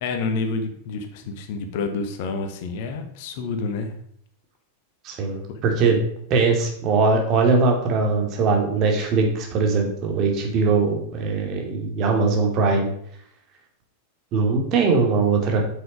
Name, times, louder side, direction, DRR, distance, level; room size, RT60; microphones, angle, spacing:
voice 1, 0.0-3.9, left 4 dB, 50° left, 6 dB, 1.4 m, -28 dB
voice 2, 5.0-6.0 6.3-12.9 14.3-15.6, right 4 dB, 35° right, 2 dB, 2.4 m, -21 dB
8.5 x 6.8 x 5.1 m, 0.67 s
figure-of-eight pair, 90°, 0 cm